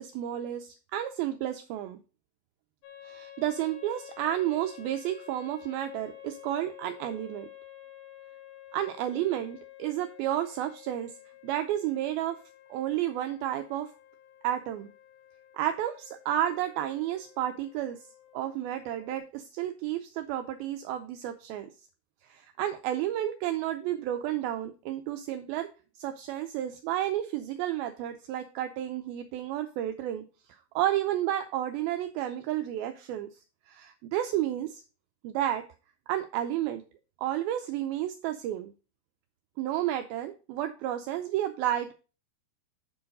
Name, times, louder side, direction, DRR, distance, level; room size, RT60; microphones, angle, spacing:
voice 1, 0.0-2.0 3.0-7.5 8.7-11.1 11.4-12.4 12.7-13.9 14.4-14.9 15.5-18.0 18.3-21.7 22.2-25.7 26.0-30.2 30.8-33.3 33.7-34.8 35.2-35.7 36.1-36.8 37.2-38.7 39.6-41.9, right 12 dB, 90° right, 7 dB, 2.1 m, -31 dB
sound 1, 2.8-19.2, left 13 dB, 85° left, 3.1 m, -51 dB
7.3 x 4.7 x 5.2 m, 0.34 s
omnidirectional pair, 4.9 m